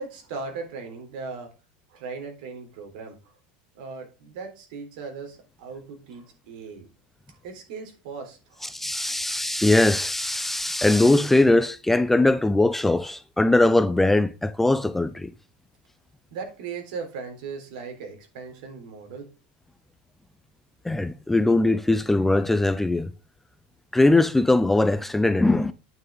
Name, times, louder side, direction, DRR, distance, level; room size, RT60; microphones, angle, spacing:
voice 1, 0.0-1.5 1.9-3.3 3.7-6.9 7.3-8.6 8.9-9.3 16.3-19.3, right 5 dB, 70° right, 3.8 m, -38 dB
voice 2, 8.6-15.3 20.8-23.1 23.9-25.7, left 2 dB, 5° left, 0.4 m, -21 dB
9.2 x 6.5 x 3.6 m
supercardioid pair, 155°, 5 cm